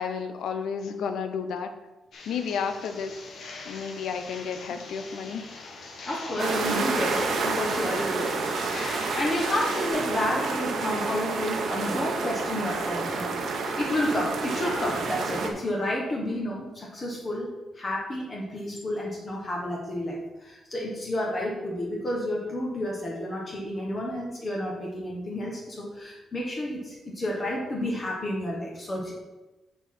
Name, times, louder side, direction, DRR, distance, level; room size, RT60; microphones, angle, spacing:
voice 1, 0.0-1.7 2.3-3.3 3.6-5.4, left 6 dB, 80° left, 8 dB, 0.8 m, -32 dB
sound 1, 2.1-9.9, left 3 dB, 60° left, 1.3 m, -42 dB
voice 2, 6.0-17.5 17.7-29.1, left 1 dB, 25° left, -3 dB, 1.4 m, -31 dB
sound 2, 6.4-15.5, right 4 dB, 60° right, 1.0 m, -29 dB
6.5 x 4.8 x 6.0 m, 1.1 s
wide cardioid pair, 155°, 0 cm